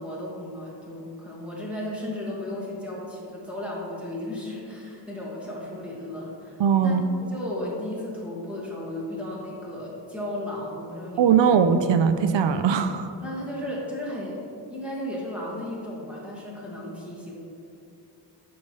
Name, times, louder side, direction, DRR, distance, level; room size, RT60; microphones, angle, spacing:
voice 1, 0.0-6.9 7.3-11.3 13.2-14.4 14.7-17.3, left 1 dB, 5° right, -6 dB, 2.0 m, -34 dB
voice 2, 6.6-7.0 11.2-13.1, right 7 dB, 85° right, 9 dB, 0.5 m, -20 dB
10.5 x 6.9 x 3.2 m, 2.8 s
wide cardioid pair, 155°, 43 cm